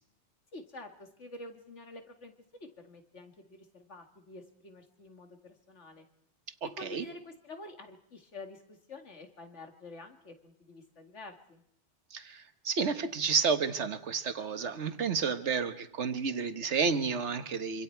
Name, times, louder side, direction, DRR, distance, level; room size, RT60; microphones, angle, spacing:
voice 1, 0.5-2.3 2.6-6.1 6.8-11.6, left 2 dB, 90° left, 5 dB, 2.4 m, -48 dB
voice 2, 6.6-7.0 12.1-17.8, right 5 dB, 80° right, 9 dB, 1.5 m, -31 dB
26.0 x 26.0 x 4.6 m, 0.72 s
omnidirectional pair, 1.2 m